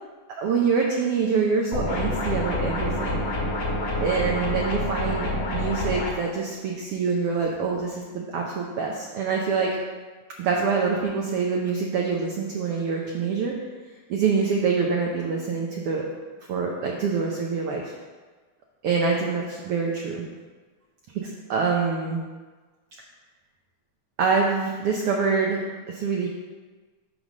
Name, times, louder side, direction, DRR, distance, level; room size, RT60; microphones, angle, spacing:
voice 1, 0.4-3.2 4.0-9.7 10.4-13.6 14.1-16.1 16.5-17.9 18.8-20.2 21.1-22.2 24.2-26.3, right 5 dB, 75° right, -1 dB, 1.4 m, -25 dB
sound 1, 1.7-6.1, left 1 dB, 75° left, 3.2 m, -27 dB
9.0 x 3.3 x 6.3 m, 1.4 s
omnidirectional pair, 3.5 m